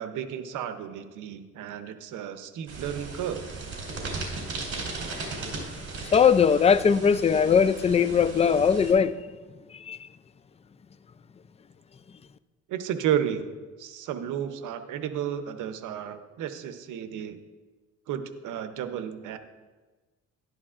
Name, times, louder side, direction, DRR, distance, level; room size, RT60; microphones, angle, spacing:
voice 1, 0.0-3.4 12.7-13.5 13.8-17.4 18.1-19.4, right 9 dB, 85° right, 0.8 m, -32 dB
sound 1, 2.7-8.9, right 3 dB, 50° right, 3.4 m, -37 dB
voice 2, 6.1-9.1 9.9-10.0, left 6 dB, 20° left, 0.3 m, -20 dB
11.5 x 11.0 x 2.5 m
cardioid pair, 90°, 30 cm